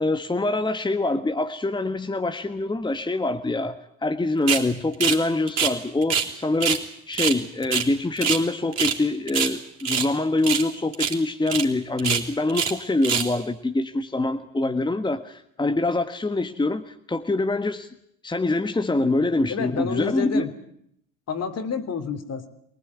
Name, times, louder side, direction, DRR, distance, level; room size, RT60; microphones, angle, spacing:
voice 1, 0.0-3.7 4.0-6.8 7.1-17.9 18.2-20.5, left 2 dB, 10° left, 7 dB, 1.5 m, -25 dB
sound 1, 4.5-4.7 5.0-5.2 5.5-6.3 6.6-6.8 7.1-8.4 8.7-9.0 9.3-10.1 10.4-10.7 10.9-11.2 11.5-11.6 12.0-12.8 13.0-13.3, right 7 dB, 45° right, 4.0 m, -25 dB
voice 2, 19.5-20.5 21.3-22.5, left 6 dB, 40° left, 9 dB, 3.2 m, -29 dB
24.0 x 19.0 x 9.7 m, 0.71 s
supercardioid pair, 85°, 37 cm